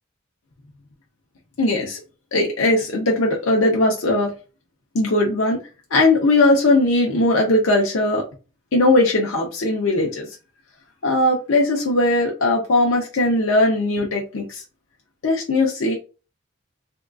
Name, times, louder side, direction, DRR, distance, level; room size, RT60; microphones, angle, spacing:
voice 1, 1.6-2.0 2.3-4.3 4.9-5.6 5.9-8.2 8.7-10.3 11.0-14.6 15.2-15.9, left 2 dB, 80° left, 0.6 m, -19 dB
3.6 x 2.3 x 2.4 m
head